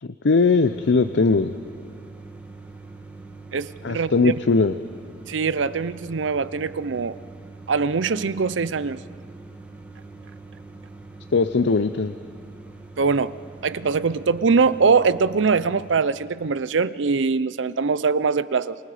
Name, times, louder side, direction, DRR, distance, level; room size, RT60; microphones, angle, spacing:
voice 1, 0.0-1.6 3.8-4.7 11.3-12.1, left 4 dB, 70° left, 11 dB, 0.6 m, -20 dB
sound 1, 0.6-16.0, right 3 dB, 10° right, 1.8 m, -43 dB
voice 2, 3.5-4.3 5.3-7.2 7.7-9.0 13.0-13.3 13.6-18.8, right 5 dB, 90° right, 16 dB, 0.6 m, -22 dB
27.0 x 25.5 x 5.0 m, 2.4 s
head